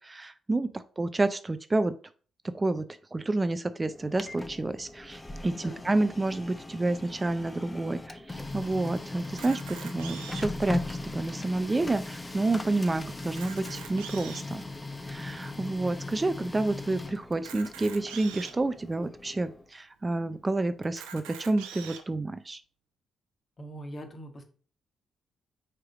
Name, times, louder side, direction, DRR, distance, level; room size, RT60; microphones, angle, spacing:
voice 1, 0.0-1.9 2.4-2.8 3.1-14.6 15.1-22.6, right 2 dB, 25° right, 11 dB, 0.5 m, -29 dB
Printer, 3.9-19.7, left 2 dB, 20° left, 0.8 m, -39 dB
Camera, 9.2-10.6 11.3-11.4 11.6-11.7 12.3-12.4 13.2-14.6 15.2-15.3 17.3-18.5 19.3-19.4 19.6-19.7 20.8-22.0, right 8 dB, 85° right, 0.8 m, -43 dB
voice 2, 23.6-24.4, right 1 dB, 40° left, 4 dB, 1.7 m, -42 dB
4.8 x 4.5 x 5.0 m, 0.41 s
hypercardioid pair, 50°, 0 cm